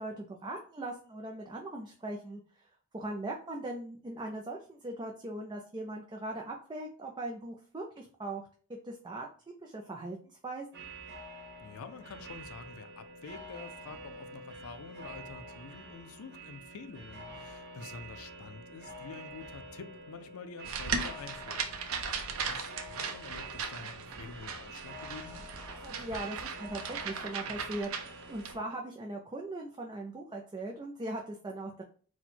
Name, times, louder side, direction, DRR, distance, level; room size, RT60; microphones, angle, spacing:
voice 1, 0.0-8.4 8.8-9.3 9.6-10.7 25.8-31.8, right 2 dB, 20° right, 0.4 m, -40 dB
sound 1, 10.7-28.6, right 2 dB, 55° right, 1.0 m, -47 dB
voice 2, 11.6-21.7 22.1-25.5, left 5 dB, 70° left, 0.5 m, -48 dB
sound 2, 20.6-28.5, right 5 dB, 70° right, 0.6 m, -38 dB
4.2 x 2.2 x 4.3 m
head